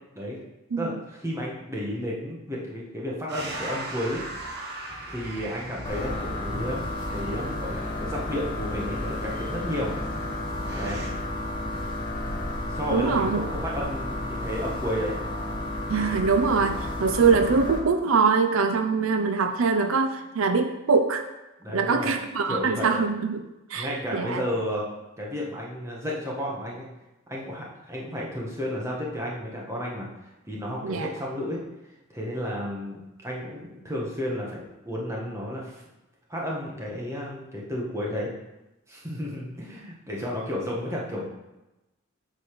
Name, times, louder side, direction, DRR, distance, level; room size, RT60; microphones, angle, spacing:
voice 1, 0.8-4.2 5.1-10.0 10.7-11.0 12.7-15.2 21.6-22.2 22.5-23.0 23.7-24.9 25.2-26.9 27.3-30.1 30.4-31.6 32.1-35.8 36.3-38.3 38.9-41.3, equal, 15° right, -4 dB, 1.6 m, -32 dB
sound 1, 3.3-11.1, right 1 dB, 50° right, 1.3 m, -39 dB
sound 2, 5.8-17.8, left 1 dB, 20° left, 1.3 m, -32 dB
voice 2, 12.9-13.4 15.9-21.2 21.7-23.4 23.7-24.4 30.8-31.1, right 5 dB, 75° right, 7 dB, 0.5 m, -23 dB
8.1 x 4.1 x 6.7 m, 0.99 s
head